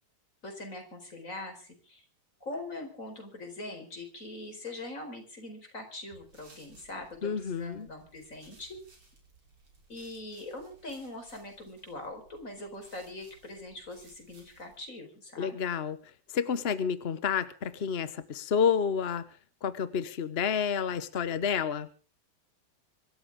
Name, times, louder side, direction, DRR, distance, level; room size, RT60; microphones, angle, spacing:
voice 1, 0.4-2.0 2.4-8.8 9.9-15.6, left 2 dB, 35° left, 4 dB, 4.9 m, -42 dB
sound 1, 6.1-14.8, right 3 dB, 80° right, 6.1 m, -60 dB
voice 2, 7.2-7.9 15.4-16.0 16.3-19.2 19.6-21.9, left 7 dB, 55° left, 13 dB, 0.7 m, -29 dB
25.5 x 13.5 x 3.6 m, 0.38 s
omnidirectional pair, 2.4 m